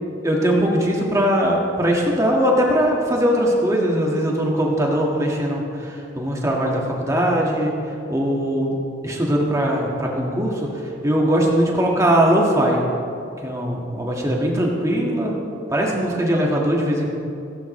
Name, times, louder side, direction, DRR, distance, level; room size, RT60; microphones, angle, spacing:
voice 1, 0.2-7.7 8.1-8.8 9.0-10.7 11.0-12.8 13.4-15.3 15.7-17.1, equal, 15° right, -2 dB, 1.6 m, -20 dB
16.5 x 14.5 x 3.2 m, 2.7 s
head